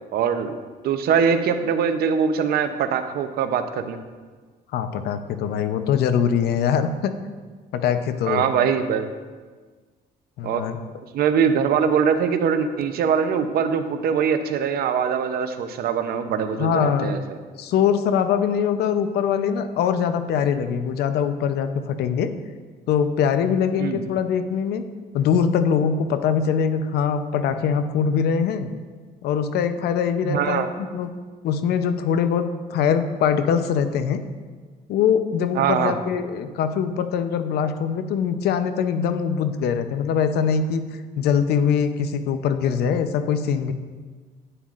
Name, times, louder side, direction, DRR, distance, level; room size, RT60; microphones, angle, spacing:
voice 1, 0.1-0.5 0.8-4.0 8.3-9.1 10.4-10.6 11.1-17.4 23.8-24.0 30.2-30.7 35.5-36.0, right 7 dB, 65° right, 8 dB, 0.7 m, -22 dB
voice 2, 4.7-7.1 7.7-8.4 10.4-10.8 16.6-17.1 17.6-22.3 22.9-24.8 25.1-28.7 29.2-31.1 31.4-32.4 32.7-34.2 34.9-40.8 41.2-43.7, left 7 dB, 75° left, 9 dB, 0.7 m, -22 dB
11.0 x 9.1 x 2.5 m, 1.5 s
cardioid pair, 110°, 17 cm